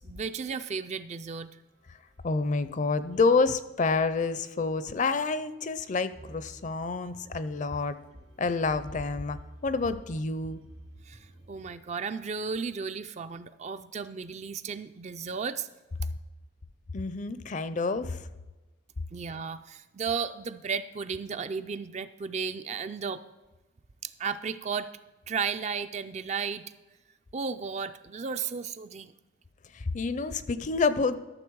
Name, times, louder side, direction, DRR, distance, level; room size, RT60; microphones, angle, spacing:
voice 1, 0.0-1.5 11.1-15.7 19.1-23.2 24.0-24.9 25.3-26.7 27.3-29.1, right 5 dB, 35° right, 11 dB, 0.4 m, -34 dB
sound 1, 1.6-11.9, right 1 dB, 75° right, 2.9 m, -53 dB
voice 2, 2.2-8.0 8.4-10.6 16.9-18.2 29.7-31.2, left 4 dB, 40° left, 13 dB, 0.5 m, -28 dB
13.0 x 6.7 x 4.6 m, 1.1 s
head